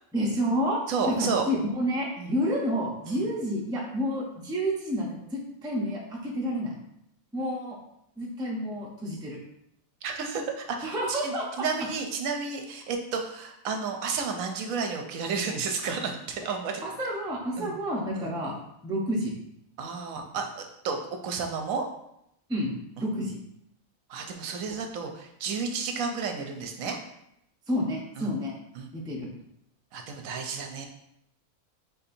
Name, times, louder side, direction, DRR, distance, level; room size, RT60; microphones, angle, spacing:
voice 1, 0.1-0.8 1.1-6.7 7.3-7.8 8.2-9.4 10.8-11.6 16.8-18.5 18.8-19.3 22.5-22.7 23.0-23.4 24.7-24.8 27.7-28.6 28.9-29.3, equal, 5° right, -3 dB, 0.5 m, -29 dB
voice 2, 0.9-1.5 2.2-2.3 3.1-3.3 10.0-16.8 17.6-17.7 18.1-18.3 19.8-21.8 24.1-27.0 28.2-28.3 28.8-28.9 29.9-30.9, right 5 dB, 75° right, 4 dB, 1.0 m, -32 dB
4.2 x 4.0 x 2.6 m, 0.78 s
omnidirectional pair, 1.5 m